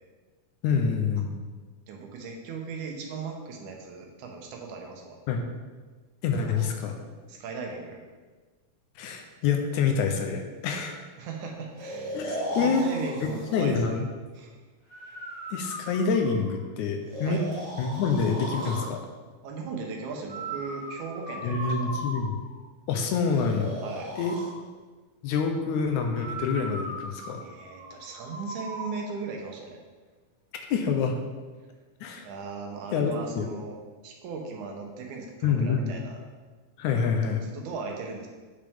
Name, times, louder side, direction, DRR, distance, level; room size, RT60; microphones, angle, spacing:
voice 1, 0.6-1.4 5.3-5.4 6.2-7.0 9.0-11.0 12.1-12.9 13.2-14.1 15.5-17.4 17.8-19.0 21.4-22.4 22.9-23.8 24.2-24.4 25.2-27.4 30.7-31.2 32.0-32.2 32.9-33.6 35.4-36.0 36.8-37.4, left 5 dB, 80° left, 4 dB, 2.1 m, -27 dB
voice 2, 1.9-5.2 6.4-6.7 7.3-8.0 11.2-14.0 14.3-14.6 17.2-17.5 19.4-21.9 23.8-24.1 27.4-29.8 32.2-33.8 34.0-36.2 37.4-38.3, right 4 dB, 75° right, 1 dB, 2.3 m, -38 dB
Breathing, 11.8-13.6 14.9-16.6 17.1-18.9 20.3-22.5 23.3-24.5 26.1-29.0, right 1 dB, 10° right, 2.0 m, -37 dB
8.3 x 5.7 x 3.6 m, 1.4 s
omnidirectional pair, 3.5 m